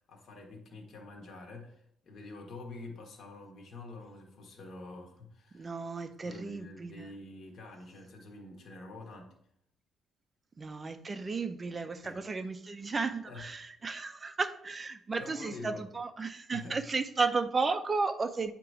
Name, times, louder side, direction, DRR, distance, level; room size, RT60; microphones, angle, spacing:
voice 1, 0.1-5.7 6.2-9.3 12.0-12.2 13.3-13.4 15.2-15.9 16.5-16.9, left 2 dB, 50° left, 1 dB, 1.4 m, -47 dB
voice 2, 5.5-7.1 10.6-18.5, right 4 dB, 25° right, 10 dB, 0.5 m, -34 dB
8.6 x 2.9 x 4.8 m, 0.72 s
cardioid pair, 155°, 0 cm